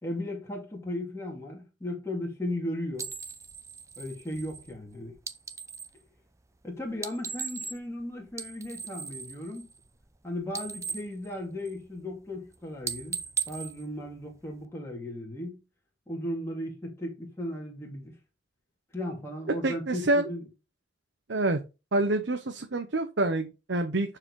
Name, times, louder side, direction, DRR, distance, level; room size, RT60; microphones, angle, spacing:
voice 1, 0.0-3.1 4.0-5.1 6.6-9.7 10.2-13.2 13.5-15.6 16.1-18.1 18.9-20.5, left 1 dB, 15° left, 2.7 m, -36 dB
sound 1, 3.0-6.0 6.9-8.0 8.3-10.2 10.4-12.0 12.3-12.5 12.8-14.7, right 6 dB, 15° right, 0.6 m, -38 dB
voice 2, 19.6-20.3 21.3-21.6 21.9-24.2, right 2 dB, 85° right, 0.9 m, -27 dB
9.8 x 4.9 x 4.8 m
head